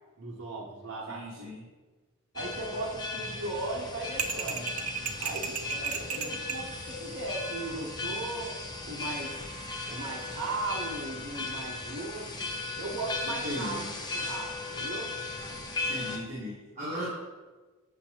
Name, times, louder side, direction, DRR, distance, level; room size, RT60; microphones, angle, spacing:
voice 1, 0.2-1.5 2.3-4.7 5.2-8.5 8.8-9.4 9.9-12.5 12.8-13.8 14.1-15.1 15.5-15.6, right 2 dB, 55° right, -6 dB, 0.9 m, -37 dB
voice 2, 1.1-1.6 13.2-13.9 15.9-17.1, equal, 30° right, -10 dB, 1.5 m, -37 dB
sound 1, 2.4-16.2, left 3 dB, 20° left, 0.6 m, -37 dB
sound 2, 4.2-6.7, right 6 dB, 75° right, 0.5 m, -33 dB
6.6 x 6.4 x 2.9 m, 1.3 s
head